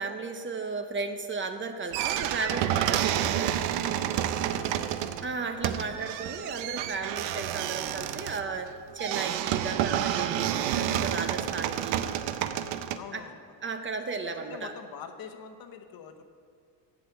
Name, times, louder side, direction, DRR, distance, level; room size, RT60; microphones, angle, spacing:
voice 1, 0.0-3.5 5.2-12.1 13.1-13.2 13.6-14.7, right 4 dB, 30° right, 7 dB, 0.6 m, -35 dB
sound 1, 1.9-13.0, right 11 dB, 85° right, 0.6 m, -29 dB
voice 2, 4.1-5.6 13.0-13.6 14.5-16.2, left 7 dB, 55° left, 7 dB, 0.9 m, -45 dB
8.0 x 7.4 x 6.9 m, 2.3 s
cardioid pair, 120°, 42 cm